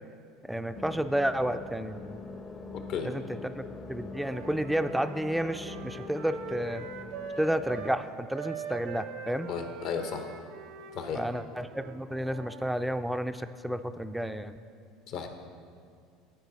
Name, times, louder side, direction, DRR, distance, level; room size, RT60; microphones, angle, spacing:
voice 1, 0.4-2.2 3.0-6.9 7.4-9.5 11.1-14.6, right 1 dB, 5° right, 10 dB, 0.3 m, -31 dB
sound 1, 0.7-8.0, left 3 dB, 30° left, 0.7 m, -44 dB
voice 2, 2.7-3.1 9.5-10.3 10.9-11.3 15.1-15.3, left 6 dB, 60° left, 6 dB, 0.9 m, -34 dB
Wind instrument woodwind instrument, 4.1-8.0 8.3-12.7, right 5 dB, 70° right, 0.7 m, -42 dB
12.5 x 4.6 x 4.1 m, 2.3 s
hypercardioid pair, 85°, 0 cm